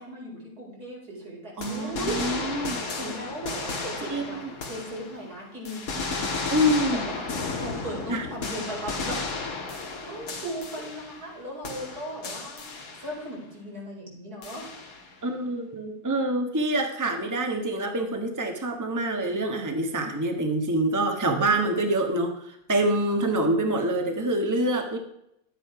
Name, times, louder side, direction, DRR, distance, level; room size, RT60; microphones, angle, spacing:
voice 1, 0.0-4.4 4.6-6.6 6.9-7.2 7.5-9.2 10.1-14.7, right 1 dB, 75° right, -3 dB, 5.2 m, -37 dB
sound 1, 1.6-5.3 5.6-11.4 11.6-13.3 14.4-15.1, left 3 dB, 65° left, 2.2 m, -34 dB
voice 2, 1.6-2.8 4.1-4.5 6.5-7.1 8.1-8.3 15.2-22.3 22.7-25.0, right 1 dB, 10° right, 4 dB, 1.3 m, -26 dB
11.5 x 9.6 x 4.8 m, 0.80 s
omnidirectional pair, 1.6 m